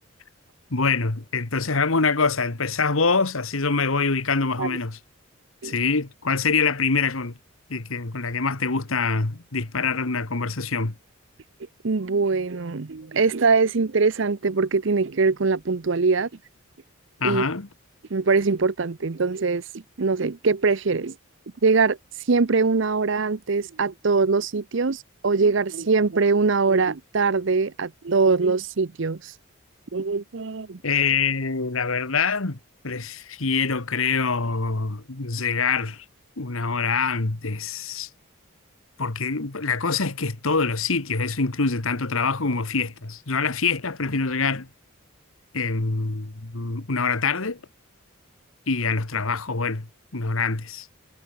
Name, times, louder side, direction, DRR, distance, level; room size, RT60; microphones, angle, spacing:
voice 1, 0.7-5.0 5.6-7.4 7.7-10.9 17.2-17.7 30.8-32.6 32.8-36.0 36.4-38.1 39.0-44.7 45.5-47.6 48.7-49.9 50.1-50.9, left 4 dB, 80° left, 1.6 m, -25 dB
voice 2, 11.8-16.3 17.2-17.5 18.1-19.6 20.0-21.2 21.6-22.0 22.3-29.3 29.9-30.8, right 4 dB, 60° right, 0.7 m, -22 dB
head